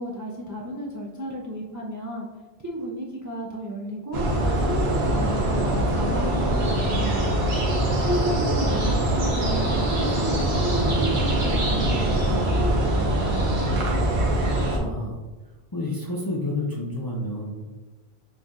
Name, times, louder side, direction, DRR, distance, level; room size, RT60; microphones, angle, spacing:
voice 1, 0.0-2.3 2.6-7.3 8.0-13.6, right 1 dB, 25° right, -2 dB, 0.4 m, -32 dB
sound 1, 4.1-14.8, right 1 dB, 85° right, 1.2 m, -23 dB
voice 2, 14.5-15.2 15.7-17.5, left 1 dB, 30° left, -3 dB, 0.4 m, -30 dB
6.6 x 3.2 x 2.4 m, 1.2 s
omnidirectional pair, 1.0 m